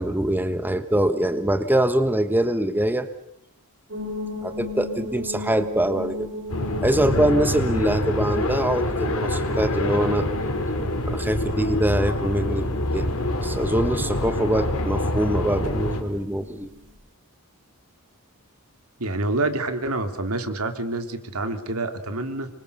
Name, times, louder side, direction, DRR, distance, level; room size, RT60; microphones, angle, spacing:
voice 1, 0.0-3.1 4.4-6.3 6.8-10.3 11.0-12.6 12.9-13.1 13.4-16.7, right 1 dB, 10° right, 9 dB, 1.3 m, -23 dB
sound 1, 3.9-16.9, left 2 dB, 55° right, 5.8 m, -38 dB
sound 2, 6.5-16.0, left 1 dB, 70° left, 4.1 m, -26 dB
voice 2, 19.0-22.5, right 2 dB, 80° right, 7 dB, 2.9 m, -27 dB
27.0 x 24.5 x 6.8 m, 0.79 s
head